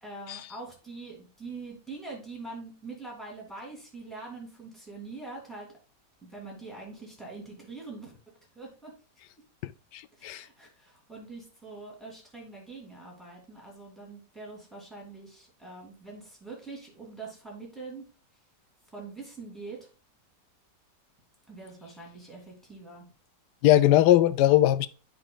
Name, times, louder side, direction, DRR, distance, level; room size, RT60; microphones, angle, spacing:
voice 1, 0.0-5.7 6.2-8.1 8.5-8.9 10.2-18.0 18.9-19.9 21.5-23.1, right 3 dB, ahead, 3.1 m, -43 dB
voice 2, 9.6-10.4 23.6-24.9, left 13 dB, 80° left, 1.2 m, -21 dB
10.5 x 5.5 x 2.4 m
omnidirectional pair, 1.8 m